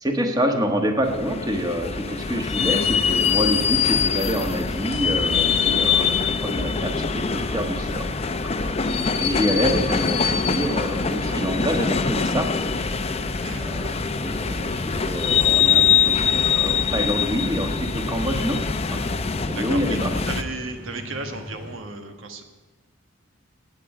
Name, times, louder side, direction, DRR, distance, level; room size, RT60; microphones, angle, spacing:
voice 1, 0.0-12.9 13.5-18.6 18.9-19.1 19.4-20.1, equal, 20° right, 4 dB, 1.4 m, -27 dB
sound 1, 1.0-20.4, left 6 dB, 30° left, 0.6 m, -23 dB
sound 2, 4.9-21.7, left 1 dB, 55° right, 4.0 m, -43 dB
voice 2, 19.5-22.4, right 3 dB, 75° right, 6 dB, 1.4 m, -34 dB
16.0 x 9.4 x 4.9 m, 1.4 s
head